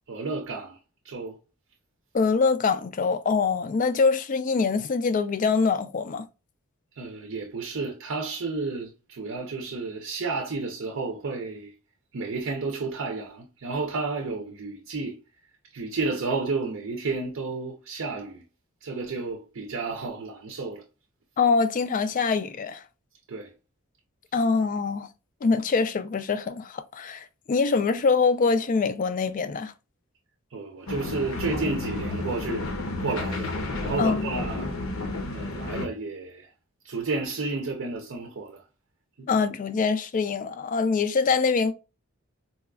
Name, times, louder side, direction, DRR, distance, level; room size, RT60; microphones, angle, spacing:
voice 1, 0.1-0.8 1.0-1.4 6.9-11.7 12.1-15.2 15.7-18.4 18.8-20.8 23.3-23.5 30.5-32.7 33.0-34.7 35.3-36.5 36.8-38.6 39.2-39.3, right 3 dB, 65° right, 0.5 m, -32 dB
voice 2, 2.1-6.2 21.4-22.8 24.3-25.1 25.4-29.7 34.0-34.3 39.3-41.7, left 4 dB, 40° left, 0.3 m, -24 dB
sound 1, 30.9-35.9, left 2 dB, 70° left, 0.8 m, -31 dB
4.0 x 2.3 x 2.3 m
head